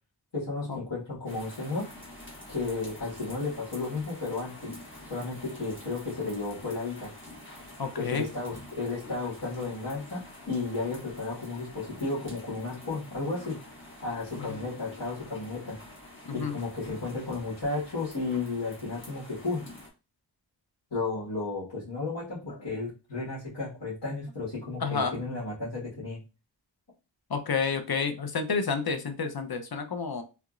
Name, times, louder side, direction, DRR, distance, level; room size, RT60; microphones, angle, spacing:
voice 1, 0.3-1.9 2.5-4.7 5.0-7.1 7.9-13.6 14.0-15.8 16.3-19.6 20.9-26.2, left 3 dB, 75° left, -9 dB, 1.8 m, -33 dB
sound 1, 1.3-19.9, left 1 dB, 25° left, 1.3 m, -47 dB
voice 2, 7.8-8.3 14.4-14.5 16.3-16.5 24.8-25.1 27.3-30.2, left 5 dB, 55° left, 7 dB, 0.7 m, -30 dB
3.4 x 3.0 x 2.5 m, 0.30 s
wide cardioid pair, 50°, 44 cm